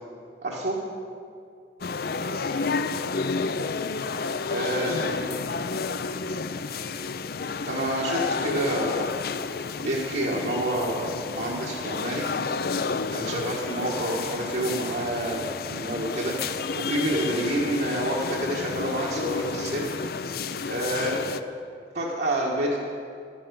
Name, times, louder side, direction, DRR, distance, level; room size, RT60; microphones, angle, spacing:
voice 1, 0.4-0.8 4.5-5.0 7.7-9.1 9.8-12.3 13.1-19.9 20.7-21.2 21.9-22.8, right 1 dB, 70° right, -5 dB, 1.6 m, -28 dB
Hospital Busy X-Ray Room tone, 1.8-21.4, left 4 dB, 60° left, 0.5 m, -31 dB
voice 2, 1.9-3.4 4.5-5.6 6.0-7.0 13.6-14.0, left 1 dB, 80° left, -3 dB, 2.3 m, -41 dB
11.5 x 10.5 x 6.9 m, 2.4 s
head